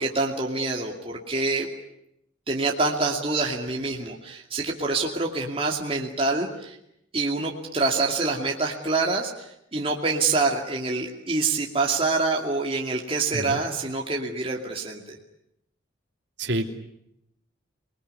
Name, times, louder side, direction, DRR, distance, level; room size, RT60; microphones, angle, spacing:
voice 1, 0.0-1.7 2.5-6.8 7.1-15.2, right 3 dB, 30° right, 0 dB, 2.6 m, -26 dB
voice 2, 16.4-16.7, right 1 dB, 60° right, 2 dB, 3.0 m, -28 dB
29.0 x 21.0 x 9.6 m, 0.80 s
head